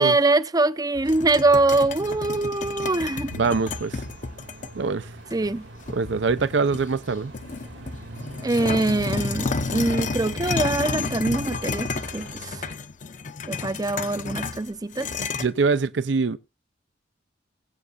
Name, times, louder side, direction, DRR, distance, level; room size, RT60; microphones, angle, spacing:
voice 1, 0.0-3.3 5.3-5.6 8.4-12.6 13.5-15.1, right 2 dB, 20° right, 0.6 m, -23 dB
sound 1, 0.9-12.8, right 1 dB, 85° right, 2.7 m, -42 dB
sound 2, 1.1-4.7 5.3-5.4 5.9-7.0 7.3-15.5, left 4 dB, 45° left, 0.8 m, -31 dB
voice 2, 3.4-3.9 4.8-5.0 5.9-7.3 15.4-16.4, right 4 dB, 70° right, 0.5 m, -23 dB
21.5 x 8.2 x 2.4 m
head